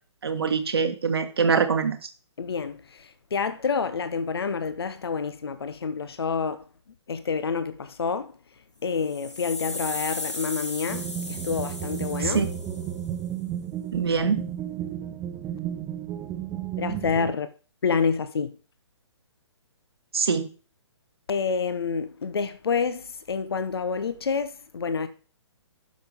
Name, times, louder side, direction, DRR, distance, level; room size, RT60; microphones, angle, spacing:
voice 1, 0.2-2.0 12.2-12.5 13.9-14.5 20.1-20.5, right 5 dB, 55° right, 1.4 m, -24 dB
voice 2, 2.4-6.6 7.1-8.3 8.8-12.5 16.8-17.5 17.8-18.6 21.3-25.1, left 5 dB, 55° left, 0.9 m, -28 dB
sound 1, 8.9-13.1, left 3 dB, 75° left, 2.3 m, -36 dB
sound 2, 10.9-17.3, right 9 dB, 15° right, 0.7 m, -33 dB
10.5 x 7.1 x 3.6 m
figure-of-eight pair, 130°, 15 cm